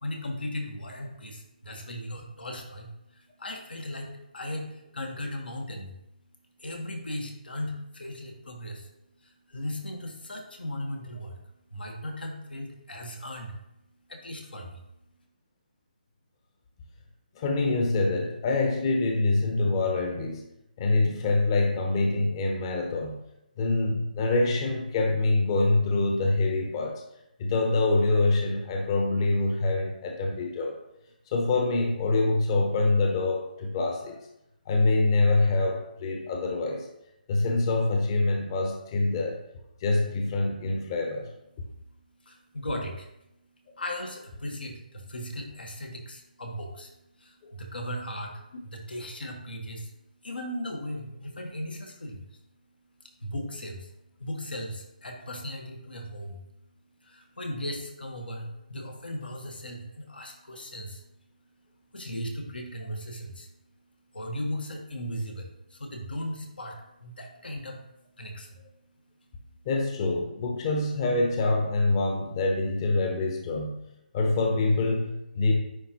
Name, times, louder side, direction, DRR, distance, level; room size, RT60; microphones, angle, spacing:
voice 1, 0.0-5.9 6.6-8.9 9.2-11.4 11.7-13.6 14.1-14.8 42.1-43.1 43.8-50.0 50.2-52.4 53.0-53.9 54.2-56.5 57.0-61.1 61.9-63.5 64.1-67.8 68.2-68.6 69.2-69.3, left 1 dB, 90° left, 2 dB, 1.4 m, -37 dB
voice 2, 17.3-20.5 20.8-23.2 23.6-27.0 27.4-30.7 31.3-34.2 34.7-36.9 37.3-39.4 39.8-41.3 47.4-47.5 69.6-73.8 74.1-75.5, left 2 dB, 30° left, 2 dB, 0.8 m, -25 dB
9.8 x 3.7 x 3.0 m, 0.85 s
hypercardioid pair, 155°, 5 cm